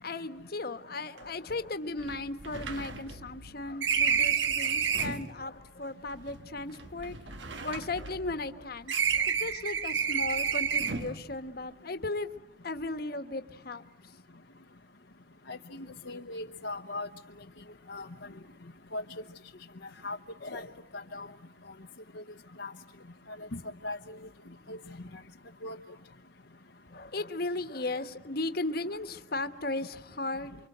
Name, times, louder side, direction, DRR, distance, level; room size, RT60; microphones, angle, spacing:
voice 1, 0.0-7.2 7.6-12.3 12.6-13.8 26.9-30.5, left 2 dB, 50° left, 9 dB, 1.4 m, -36 dB
sound 1, 1.2-1.3 1.5-1.6 2.0-5.3 6.1-8.5 8.9-11.2, right 7 dB, 70° right, 1.4 m, -30 dB
voice 2, 16.1-17.1 17.9-18.1 18.9-19.0 20.0-20.2 20.4-20.7 20.9-21.3 22.6-22.7 23.5-24.0 24.7-24.8 25.6-25.8, left 2 dB, 70° left, 3 dB, 1.0 m, -37 dB
29.0 x 24.5 x 8.0 m, 0.87 s
head